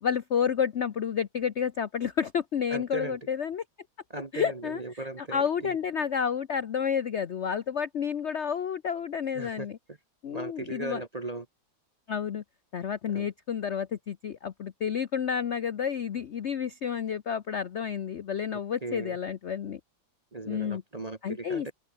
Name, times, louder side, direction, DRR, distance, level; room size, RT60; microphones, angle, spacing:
voice 1, 0.0-3.6 4.3-4.8 5.2-9.8 10.2-11.0 12.1-12.4 12.7-19.8 20.5-20.8 21.2-21.7, left 7 dB, 60° left, 0.7 m, -30 dB
voice 2, 2.7-3.2 4.1-5.8 9.3-9.7 10.3-11.5 13.1-13.3 18.5-19.2 20.3-21.7, right 2 dB, 30° right, 0.8 m, -37 dB
open air
omnidirectional pair, 2.1 m